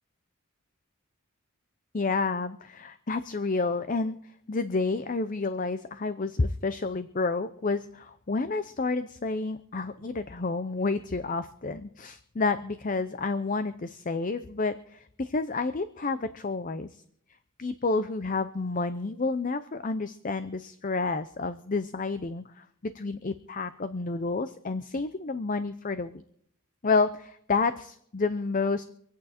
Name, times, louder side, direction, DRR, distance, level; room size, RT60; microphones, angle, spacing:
voice 1, 1.9-4.2 4.5-16.9 17.6-26.2 26.8-28.8, left 3 dB, 40° left, 11 dB, 0.6 m, -30 dB
26.0 x 8.7 x 4.3 m, 0.68 s
head